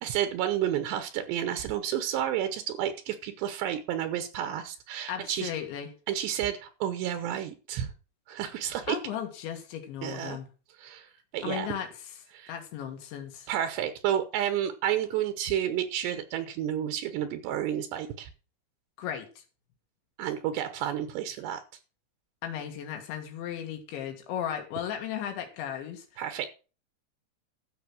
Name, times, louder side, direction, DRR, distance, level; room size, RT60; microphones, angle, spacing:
voice 1, 0.0-5.5 6.1-7.9 8.3-9.0 10.0-10.4 10.8-11.7 12.3-12.5 13.5-18.3 20.2-21.6 26.2-26.5, right 10 dB, 80° right, 10 dB, 3.1 m, -31 dB
voice 2, 5.1-5.9 8.9-10.5 11.4-12.1 12.5-13.5 19.0-19.4 22.4-26.2, left 9 dB, 85° left, 4 dB, 4.0 m, -36 dB
13.5 x 6.8 x 6.1 m, 0.34 s
omnidirectional pair, 5.1 m